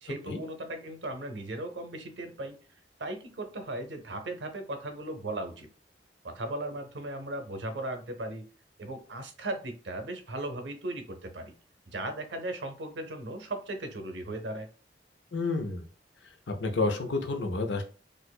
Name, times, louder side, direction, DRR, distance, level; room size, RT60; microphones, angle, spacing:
voice 1, 0.0-2.5 3.0-5.7 6.2-8.4 8.8-11.5 11.9-14.7, right 1 dB, 80° right, 6 dB, 0.7 m, -37 dB
voice 2, 15.3-15.8 16.5-17.8, left 3 dB, 75° left, 5 dB, 0.6 m, -29 dB
4.3 x 2.5 x 2.3 m, 0.37 s
head